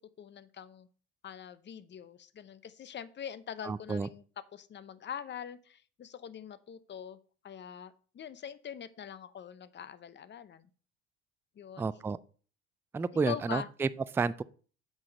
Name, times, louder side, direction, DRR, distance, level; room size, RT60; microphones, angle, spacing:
voice 1, 0.2-0.9 1.2-4.2 4.5-7.2 7.4-10.7 11.6-11.9 13.3-13.7, left 8 dB, 35° left, 0.8 m, -43 dB
voice 2, 3.6-4.1 11.8-12.2 12.9-13.9 14.1-14.4, right 4 dB, 10° right, 0.3 m, -30 dB
8.4 x 4.8 x 5.4 m
supercardioid pair, 80°, 30 cm